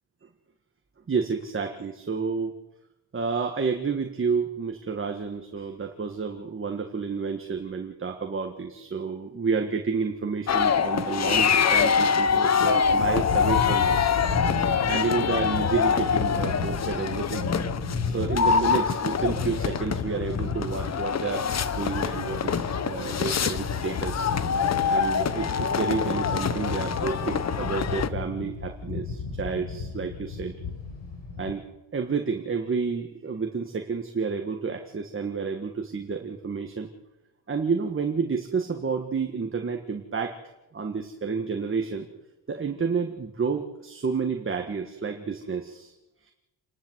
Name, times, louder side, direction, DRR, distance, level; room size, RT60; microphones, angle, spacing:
voice 1, 1.1-2.5 3.1-14.1 14.9-17.5 17.9-24.3 24.9-30.5 31.4-31.6 31.9-36.9 37.5-40.4 40.7-42.1 42.5-45.9 46.2-46.3, right 5 dB, 25° right, 4 dB, 1.6 m, -30 dB
sound 1, 10.5-28.1, left 6 dB, 35° left, 0.9 m, -25 dB
sound 2, 12.8-31.5, left 4 dB, 70° left, 4.8 m, -33 dB
28.5 x 11.5 x 8.0 m, 1.0 s
cardioid pair, 125°, 45 cm